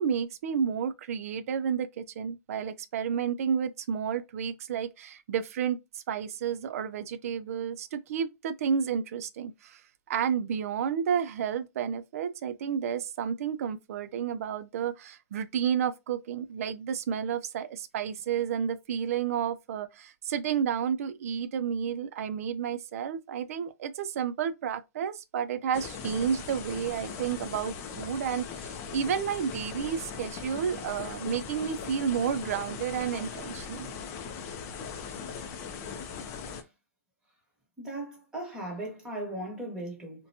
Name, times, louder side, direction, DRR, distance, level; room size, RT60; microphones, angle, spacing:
voice 1, 0.0-9.8 10.1-33.9, right 7 dB, 70° right, 0.4 m, -31 dB
sound 1, 25.7-36.6, left 6 dB, 35° left, 0.4 m, -39 dB
voice 2, 37.8-40.3, right 1 dB, 10° right, 1.2 m, -38 dB
2.6 x 2.2 x 2.7 m
hypercardioid pair, 145°, 8 cm